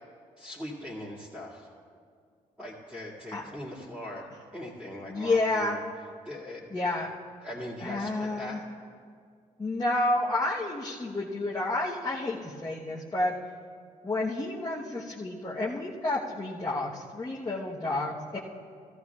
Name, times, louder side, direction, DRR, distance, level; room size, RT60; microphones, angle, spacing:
voice 1, 0.4-1.7 2.6-4.3 4.5-5.8 6.2-6.7 7.4-8.6 18.3-18.4, left 1 dB, 5° right, -9 dB, 2.3 m, -40 dB
voice 2, 5.1-5.8 6.7-7.1 7.8-8.6 9.6-13.3 14.0-18.4, left 2 dB, 25° left, -6 dB, 1.1 m, -30 dB
15.0 x 13.5 x 2.4 m, 2.1 s
cardioid pair, 85°, 14 cm